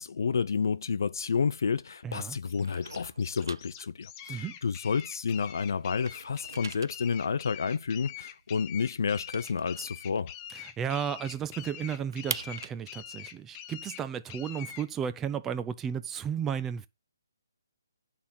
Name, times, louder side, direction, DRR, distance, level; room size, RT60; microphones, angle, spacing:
voice 1, 0.0-10.3, left 5 dB, 65° left, 0.6 m, -30 dB
sound 1, 0.5-2.0 2.3-5.5 5.8-10.8 11.1-11.2 11.5-15.3, right 5 dB, 75° right, 0.4 m, -44 dB
voice 2, 2.0-2.4 4.3-4.6 10.5-16.9, right 8 dB, 10° right, 0.4 m, -34 dB
sound 2, 2.5-14.9, left 11 dB, 25° left, 0.7 m, -45 dB
10.0 x 4.2 x 5.7 m
hypercardioid pair, 150°, 2 cm